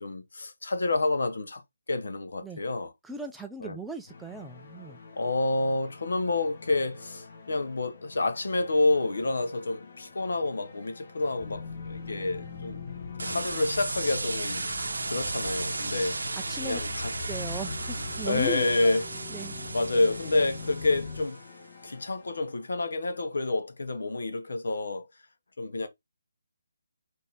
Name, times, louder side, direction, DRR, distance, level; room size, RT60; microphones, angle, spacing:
voice 1, 0.0-1.6 1.9-2.9 3.6-3.8 5.1-12.8 13.2-14.7 15.0-16.3 16.6-17.1 18.2-19.0 19.7-21.4 21.8-25.1 25.6-25.9, left 2 dB, 70° left, 0.8 m, -28 dB
voice 2, 3.0-5.0 16.5-16.8 17.2-19.0 19.3-19.5, right 3 dB, 5° right, 0.4 m, -38 dB
sound 1, 4.1-23.0, left 4 dB, 50° left, 1.2 m, -50 dB
sound 2, 11.4-21.3, left 3 dB, 25° left, 1.0 m, -40 dB
sound 3, 13.2-21.4, right 3 dB, 75° right, 0.8 m, -35 dB
4.0 x 2.6 x 3.5 m
figure-of-eight pair, 155°, 0 cm